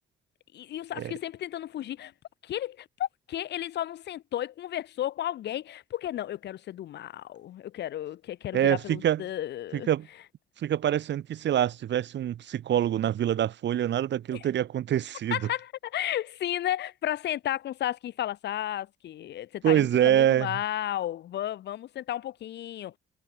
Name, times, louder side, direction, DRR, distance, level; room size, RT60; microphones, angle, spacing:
voice 1, 0.5-2.1 2.4-9.9 14.3-14.5 15.3-23.0, left 12 dB, 60° left, 0.5 m, -33 dB
voice 2, 8.5-9.2 9.7-10.1 10.6-15.4 19.6-20.6, right 11 dB, 65° right, 1.2 m, -25 dB
cardioid pair, 90°, 20 cm